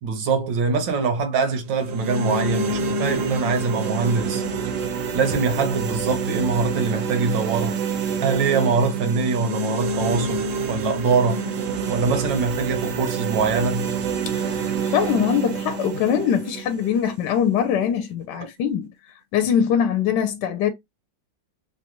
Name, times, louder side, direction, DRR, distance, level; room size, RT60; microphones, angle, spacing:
voice 1, 0.0-4.4 5.1-7.8 8.2-11.4 11.9-13.9, right 4 dB, 80° right, 1.6 m, -23 dB
sound 1, 1.7-17.7, right 4 dB, 65° right, 0.8 m, -27 dB
voice 2, 14.3-18.9 19.3-20.7, left 8 dB, 75° left, 1.2 m, -22 dB
3.9 x 2.1 x 3.0 m
omnidirectional pair, 2.0 m